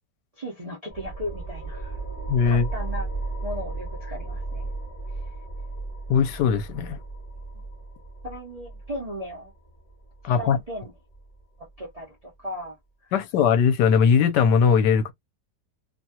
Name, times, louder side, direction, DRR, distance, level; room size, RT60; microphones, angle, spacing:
voice 1, 0.4-2.0 2.4-3.1 3.4-4.7 7.5-7.6 8.2-9.5 10.2-10.9 11.8-12.8, equal, 40° right, 0.5 m, -36 dB
sound 1, 0.9-12.0, right 2 dB, 20° left, 1.3 m, -35 dB
voice 2, 2.3-2.7 6.1-7.0 10.2-10.6 13.1-15.1, left 6 dB, 75° left, 1.2 m, -20 dB
3.0 x 2.3 x 2.7 m
omnidirectional pair, 1.9 m